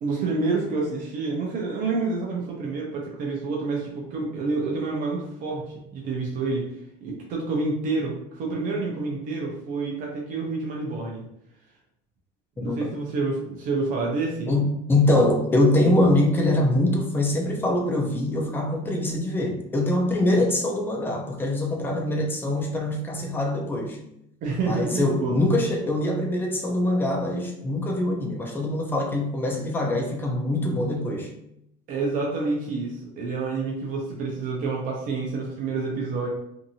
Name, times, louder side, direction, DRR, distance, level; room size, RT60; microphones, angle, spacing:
voice 1, 0.0-6.6 7.0-11.2 12.6-14.5 24.4-25.3 31.9-36.3, right 3 dB, 50° right, -2 dB, 0.6 m, -28 dB
voice 2, 14.5-24.0 24.6-31.3, left 1 dB, 10° left, 0 dB, 0.4 m, -23 dB
2.6 x 2.5 x 2.7 m, 0.78 s
cardioid pair, 165°, 19 cm